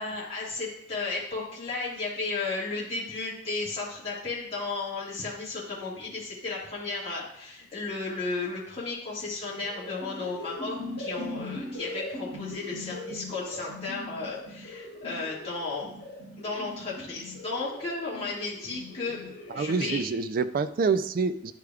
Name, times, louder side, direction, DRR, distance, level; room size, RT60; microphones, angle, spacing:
voice 1, 0.0-16.0 16.4-20.1, left 3 dB, 30° left, -8 dB, 1.8 m, -34 dB
sound 1, 9.5-20.0, left 2 dB, 55° left, 2.5 m, -40 dB
voice 2, 19.6-21.5, right 4 dB, 50° right, 12 dB, 0.4 m, -27 dB
10.5 x 4.9 x 2.3 m, 0.73 s
head